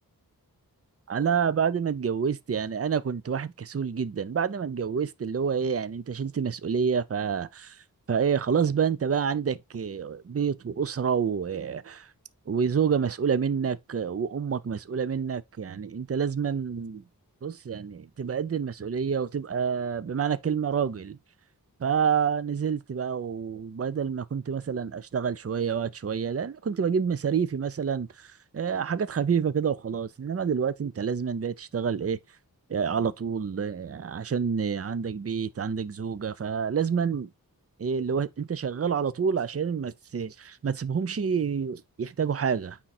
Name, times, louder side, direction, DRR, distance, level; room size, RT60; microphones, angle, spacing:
voice 1, 1.1-7.8 8.1-12.1 12.5-17.0 17.4-21.2 21.8-32.2 32.7-37.3 37.8-42.8, right 6 dB, 40° right, 0.6 m, -28 dB
8.9 x 3.8 x 4.3 m
wide cardioid pair, 70°, 37 cm